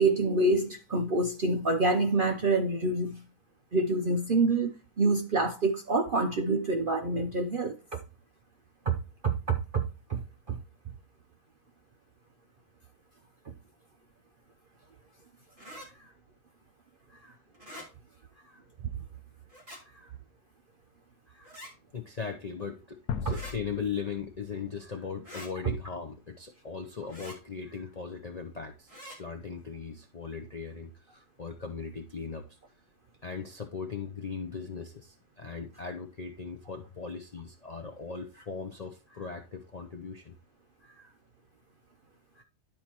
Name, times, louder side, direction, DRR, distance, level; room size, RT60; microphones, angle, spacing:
voice 1, 0.0-3.2 3.7-7.8 8.9-9.0 9.2-9.8 10.1-10.2 10.5-10.6 23.3-23.4, right 3 dB, 55° right, 0.6 m, -26 dB
sound 1, 15.6-15.9 17.5-17.9 19.5-19.8 21.4-21.7 23.3-23.5 25.2-25.5 27.1-27.4 28.9-29.2, equal, 20° right, 2.0 m, -45 dB
voice 2, 18.3-18.6 19.8-20.1 21.3-21.6 21.9-32.4 33.2-40.4 40.8-41.1 42.3-42.4, left 5 dB, 50° left, 0.5 m, -39 dB
sound 2, 23.1-26.0, left 7 dB, 70° left, 1.1 m, -40 dB
12.0 x 4.4 x 2.9 m
omnidirectional pair, 1.6 m